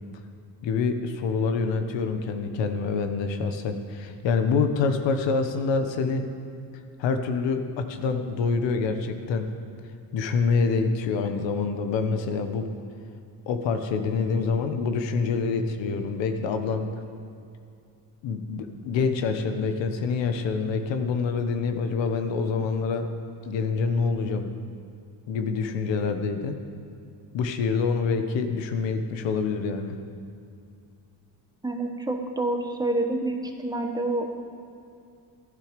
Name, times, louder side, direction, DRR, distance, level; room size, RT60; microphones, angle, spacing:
voice 1, 0.6-6.2 7.0-9.5 10.1-12.7 13.5-16.9 18.2-23.1 23.5-24.5 25.3-26.5 27.3-30.0, left 5 dB, 90° left, 7 dB, 1.1 m, -26 dB
voice 2, 31.6-34.3, right 2 dB, 10° right, 3 dB, 1.0 m, -28 dB
13.5 x 11.5 x 5.2 m, 2.5 s
cardioid pair, 140°, 43 cm